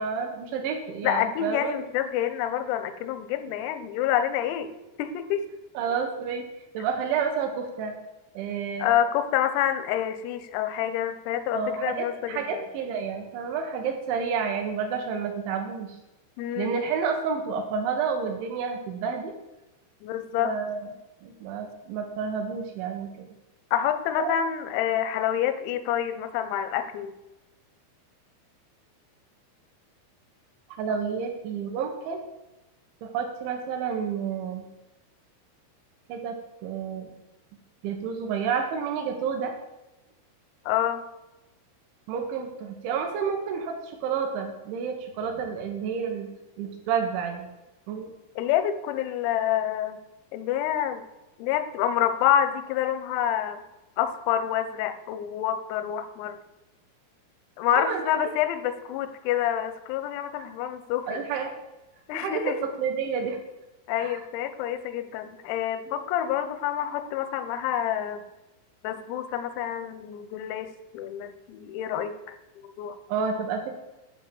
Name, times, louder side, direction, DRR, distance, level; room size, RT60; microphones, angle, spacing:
voice 1, 0.0-1.8 5.7-6.4 6.7-7.9 8.3-8.9 11.5-16.0 16.6-19.3 20.4-20.9 21.2-23.3 24.2-24.3 30.7-32.2 33.0-34.6 36.1-36.4 36.6-37.1 37.8-39.5 42.1-46.3 46.6-47.5 47.9-48.1 57.8-58.2 61.1-61.5 62.1-63.4 64.0-64.2 65.9-66.0 73.1-73.7, right 6 dB, 70° right, 4 dB, 3.5 m, -30 dB
voice 2, 1.0-4.7 5.0-5.5 8.8-12.7 16.4-16.7 20.0-20.5 23.7-27.1 40.7-41.0 48.4-50.0 50.3-51.1 51.4-53.6 54.0-56.4 57.6-61.2 62.1-62.6 63.9-68.2 68.8-73.0, left 10 dB, 85° left, 11 dB, 3.5 m, -27 dB
11.0 x 5.3 x 7.8 m, 1.0 s
omnidirectional pair, 6.0 m